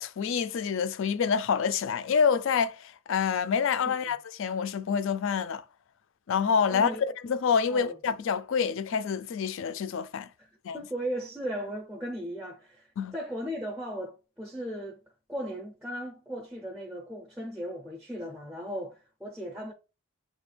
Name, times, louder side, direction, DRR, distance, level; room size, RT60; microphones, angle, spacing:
voice 1, 0.0-5.6 6.3-6.9 7.2-10.3 10.6-10.8 13.0-13.1, left 6 dB, 60° left, 0.3 m, -27 dB
voice 2, 6.7-7.0 7.7-8.0 10.4-10.5 10.7-12.9 13.1-15.0 15.3-19.7, equal, ahead, 0.5 m, -37 dB
6.0 x 2.3 x 3.2 m
head